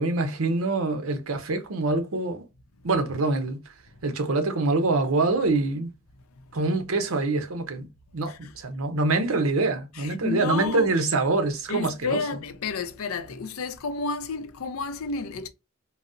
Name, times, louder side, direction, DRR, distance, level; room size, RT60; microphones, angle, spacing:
voice 1, 0.0-2.4 2.8-3.6 4.0-5.9 6.5-7.9 8.1-12.2, right 3 dB, 75° right, 0.7 m, -25 dB
voice 2, 9.9-10.9 11.7-15.5, left 4 dB, 80° left, 0.5 m, -31 dB
3.9 x 2.0 x 2.5 m
head